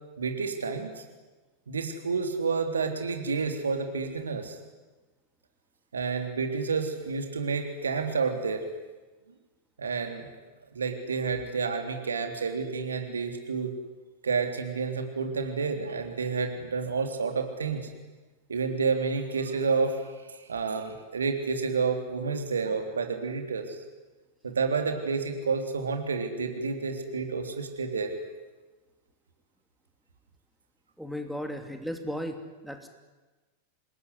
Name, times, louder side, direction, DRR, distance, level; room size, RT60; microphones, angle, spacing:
voice 1, 0.2-1.0 1.7-4.6 5.9-8.6 9.8-10.3 10.7-13.7 14.2-17.9 18.5-23.8 24.4-28.1, right 5 dB, 70° right, 5 dB, 3.5 m, -30 dB
voice 2, 31.0-32.9, equal, ahead, 5 dB, 2.8 m, -35 dB
26.5 x 21.0 x 9.8 m, 1.2 s
figure-of-eight pair, 90°, 0 cm